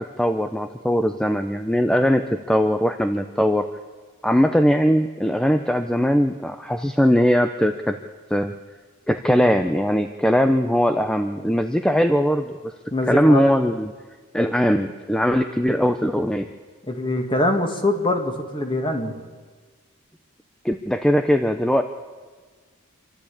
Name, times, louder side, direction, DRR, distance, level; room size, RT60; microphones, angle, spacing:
voice 1, 0.0-3.7 4.2-8.0 8.3-8.5 9.1-12.6 13.1-13.9 14.3-16.5 20.6-21.8, equal, 5° left, 8 dB, 0.5 m, -20 dB
voice 2, 12.9-13.4 16.9-19.2, left 1 dB, 25° left, 4 dB, 1.9 m, -23 dB
27.0 x 12.0 x 8.6 m, 1.5 s
head